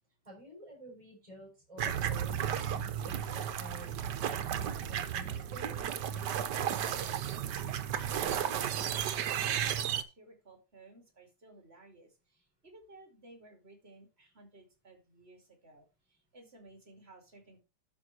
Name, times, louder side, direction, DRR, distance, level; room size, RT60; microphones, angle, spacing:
voice 1, 0.2-5.7, equal, 20° right, -2 dB, 6.3 m, -51 dB
sound 1, 1.8-10.0, right 9 dB, 75° right, 1.5 m, -33 dB
voice 2, 6.9-7.2 7.8-17.6, right 2 dB, 35° right, 4 dB, 3.0 m, -56 dB
12.0 x 5.5 x 4.4 m, 0.29 s
omnidirectional pair, 1.9 m